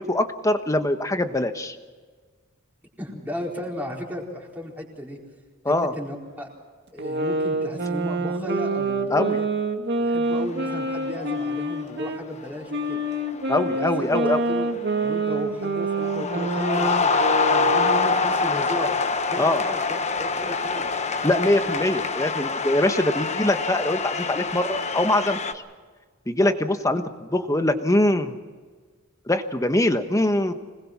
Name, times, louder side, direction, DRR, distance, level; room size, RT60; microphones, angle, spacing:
voice 1, 0.0-1.8 5.6-5.9 9.1-9.4 13.5-14.4 19.4-19.6 21.2-25.6 26.3-28.4 29.3-30.5, left 1 dB, 15° left, 8 dB, 1.2 m, -23 dB
voice 2, 3.0-5.2 5.7-6.5 6.9-9.5 10.0-13.0 13.7-14.7 15.0-19.0 19.3-20.9 26.4-26.6, left 1 dB, 10° right, -2 dB, 4.3 m, -34 dB
sound 1, 7.0-12.2 12.7-18.3, right 2 dB, 55° right, 2.0 m, -27 dB
sound 2, 10.3-10.7 11.0-11.5 12.4-12.7 13.1-15.3 15.6-25.5, left 4 dB, 35° left, 1.1 m, -26 dB
26.0 x 20.5 x 6.0 m, 1.5 s
head